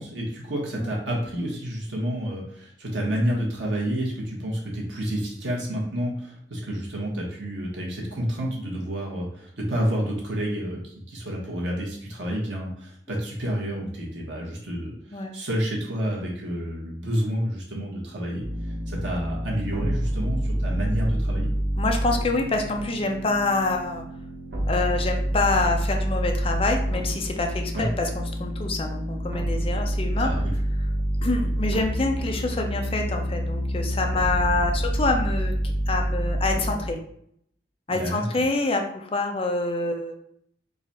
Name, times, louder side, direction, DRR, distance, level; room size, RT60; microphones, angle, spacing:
voice 1, 0.0-18.4 18.9-21.5 27.7-27.9 30.2-30.5 37.9-38.2, equal, 90° right, -2 dB, 1.3 m, -29 dB
sound 1, 18.4-36.9, equal, 75° right, 1.0 m, -27 dB
voice 2, 21.8-24.0 24.7-30.3 31.2-35.5 35.9-37.0 37.9-40.2, left 3 dB, 30° left, 3 dB, 0.5 m, -26 dB
3.9 x 2.5 x 4.1 m, 0.70 s
head